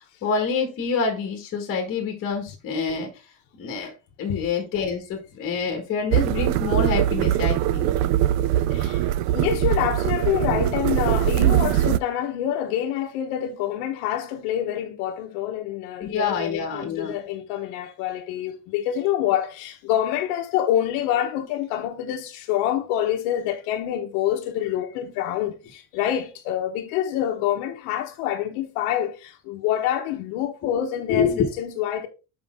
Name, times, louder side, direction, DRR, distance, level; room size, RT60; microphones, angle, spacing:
voice 1, 0.2-3.1 3.6-3.9 4.2-8.1 16.0-17.2 30.6-30.8 31.1-31.5, left 5 dB, 30° left, 1.6 m, -26 dB
sound 1, 6.1-12.0, right 12 dB, 80° right, 0.5 m, -22 dB
voice 2, 8.7-32.1, left 11 dB, 80° left, 1.2 m, -26 dB
7.2 x 4.9 x 3.6 m
cardioid pair, 175°, 44 cm